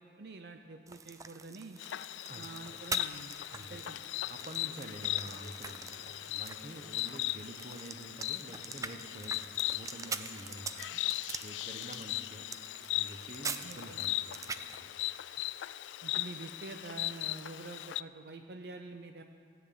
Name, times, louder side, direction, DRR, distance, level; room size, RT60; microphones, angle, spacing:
voice 1, 0.0-1.8 2.3-3.4 3.6-4.0 13.6-14.0 16.0-19.2, right 3 dB, 60° right, 6 dB, 0.7 m, -47 dB
sound 1, 0.9-14.8, right 5 dB, 20° right, 0.4 m, -44 dB
Insect, 1.8-18.0, left 15 dB, 85° left, 0.3 m, -38 dB
voice 2, 3.5-3.9 4.3-11.0 11.4-12.5 12.9-14.9, right 1 dB, 35° right, 7 dB, 1.0 m, -48 dB
15.5 x 9.4 x 8.6 m, 2.3 s
head